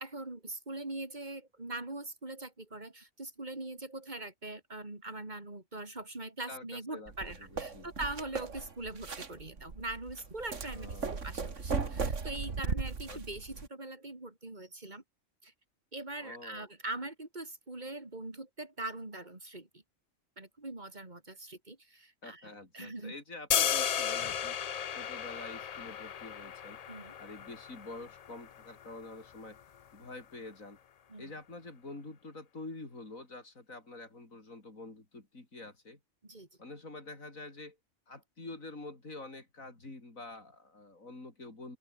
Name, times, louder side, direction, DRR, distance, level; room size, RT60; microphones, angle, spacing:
voice 1, 0.0-11.0 11.2-15.0 15.4-15.5 15.9-19.7 20.4-23.2 26.9-27.1 31.1-31.3 36.2-36.5, right 2 dB, 35° right, 3.2 m, -42 dB
voice 2, 6.5-7.9 10.7-11.2 13.1-13.2 16.2-16.7 22.2-24.6 25.0-26.8 27.2-29.6 29.9-30.8 31.2-36.0 36.6-37.8 38.1-41.8, left 2 dB, 90° left, 5.2 m, -47 dB
sound 1, 7.1-13.7, right 4 dB, 65° right, 2.4 m, -37 dB
sound 2, 23.5-29.6, left 8 dB, 65° left, 0.3 m, -35 dB
open air
omnidirectional pair, 1.4 m